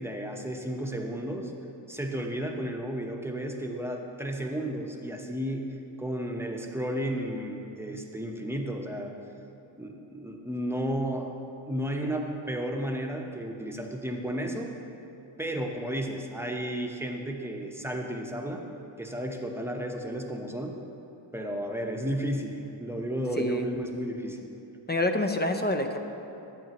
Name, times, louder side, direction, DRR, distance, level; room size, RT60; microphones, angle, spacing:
voice 1, 0.0-1.5 1.9-9.1 9.8-11.3 11.7-14.7 15.4-18.6 19.0-20.8 21.3-24.4, equal, 5° right, 1 dB, 0.9 m, -33 dB
voice 2, 24.9-26.0, left 1 dB, 20° left, 5 dB, 0.6 m, -27 dB
12.0 x 8.0 x 3.0 m, 2.8 s
cardioid pair, 45°, 48 cm